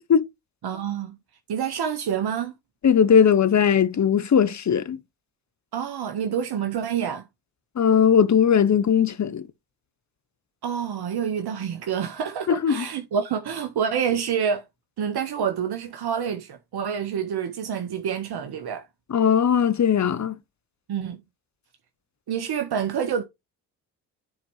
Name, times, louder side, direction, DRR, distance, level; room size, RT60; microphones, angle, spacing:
voice 1, 0.6-1.2 1.5-2.5 5.7-7.2 10.6-14.6 15.0-18.9 20.9-21.2 22.3-23.2, right 8 dB, 60° right, 1.4 m, -27 dB
voice 2, 2.8-5.0 7.8-9.4 12.5-12.8 19.1-20.3, left 7 dB, 40° left, 1.1 m, -19 dB
10.5 x 4.5 x 3.3 m
hypercardioid pair, 45°, 44 cm